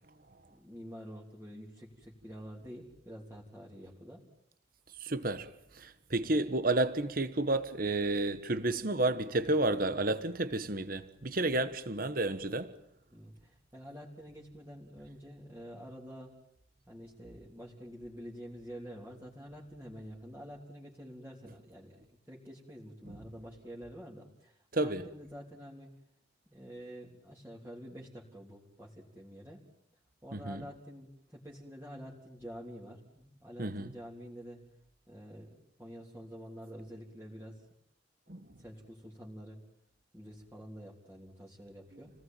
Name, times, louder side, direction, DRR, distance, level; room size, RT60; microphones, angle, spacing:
voice 1, 0.5-4.2 13.1-16.4 16.9-25.9 26.5-29.6 30.2-34.6 35.1-37.7 38.3-39.6 40.1-42.1, equal, 10° right, 3.5 m, -48 dB
voice 2, 5.0-5.5 5.8-12.7 24.7-25.0 30.3-30.6 33.6-33.9 38.3-38.4, right 2 dB, 45° right, 1.3 m, -31 dB
29.5 x 19.0 x 9.2 m
head